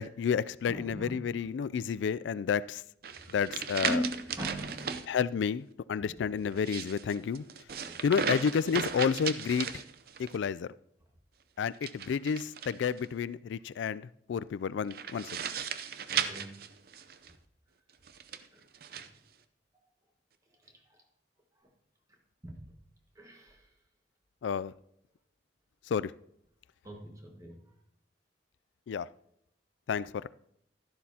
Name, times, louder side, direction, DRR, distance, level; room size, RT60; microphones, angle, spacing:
voice 1, 0.0-2.8 3.3-4.0 5.1-7.4 8.0-9.7 10.2-10.7 11.6-15.3 24.4-24.7 25.9-26.1 28.9-29.1 29.9-30.3, left 6 dB, 85° left, 0.3 m, -30 dB
voice 2, 0.7-1.2 3.1-3.4 3.8-5.1 6.0-6.2 7.8-8.0 16.1-16.6 18.5-18.6 19.0-19.1 20.6-21.0 22.4-22.7 23.1-23.7 26.8-27.6, right 1 dB, 20° right, 1.6 m, -40 dB
sound 1, 3.0-5.1 6.5-10.4 11.7-13.1 14.9-17.3 18.1-19.1, right 7 dB, 55° right, 0.6 m, -36 dB
12.0 x 11.5 x 2.8 m
head